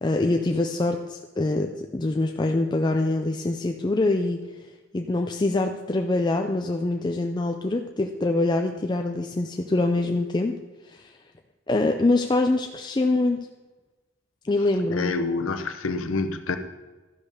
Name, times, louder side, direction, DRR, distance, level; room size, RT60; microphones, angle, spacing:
voice 1, 0.0-4.4 4.9-10.5 10.9-11.1 11.7-13.5 14.5-15.1, left 2 dB, 20° left, 4 dB, 0.4 m, -24 dB
voice 2, 14.9-16.6, left 3 dB, 80° left, 8 dB, 0.9 m, -27 dB
12.5 x 5.4 x 6.5 m, 1.2 s
head